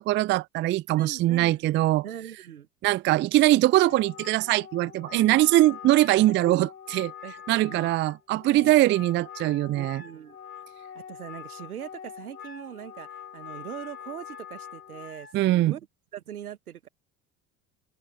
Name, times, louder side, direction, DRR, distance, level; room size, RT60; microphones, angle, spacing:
voice 1, 0.0-2.0 2.8-6.7 6.9-7.1 7.5-10.0 15.3-15.7, right 16 dB, 25° right, 0.4 m, -22 dB
voice 2, 0.9-1.6 2.0-2.7 5.1-5.4 6.5-6.7 7.2-7.9 8.5-8.7 9.7-10.4 10.9-15.8 16.1-16.9, right 10 dB, 80° right, 1.2 m, -41 dB
Wind instrument woodwind instrument, 3.7-15.4, left 8 dB, 80° left, 3.6 m, -44 dB
open air
figure-of-eight pair, 60°, 44 cm